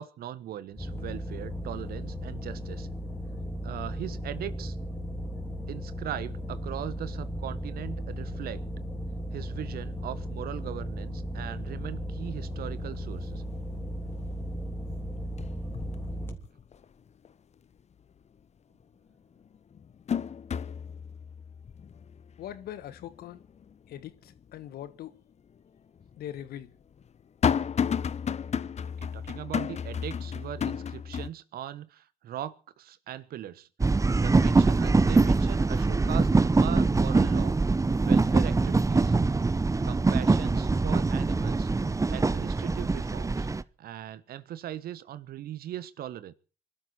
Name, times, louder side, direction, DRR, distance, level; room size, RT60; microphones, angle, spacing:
voice 1, 0.0-2.9 3.6-4.8 5.7-8.6 9.3-13.4 29.0-33.7 34.2-37.6 38.0-39.2 39.8-41.7 42.1-43.5 43.8-46.3, right 11 dB, 60° right, 1.2 m, -39 dB
sound 1, 0.7-16.3, equal, 15° left, 3.3 m, -36 dB
sound 2, 12.1-12.2 12.6-13.1 13.5-14.3 14.6-16.9 17.3-17.4 18.8-18.9 19.4-24.6 25.0-25.1 26.0-31.3, left 7 dB, 40° left, 0.8 m, -33 dB
voice 2, 22.4-23.4 23.9-25.2 26.2-26.7, left 11 dB, 60° left, 1.3 m, -41 dB
sound 3, 33.8-43.6, right 3 dB, 20° right, 0.8 m, -23 dB
25.5 x 12.5 x 4.4 m
figure-of-eight pair, 45°, 18 cm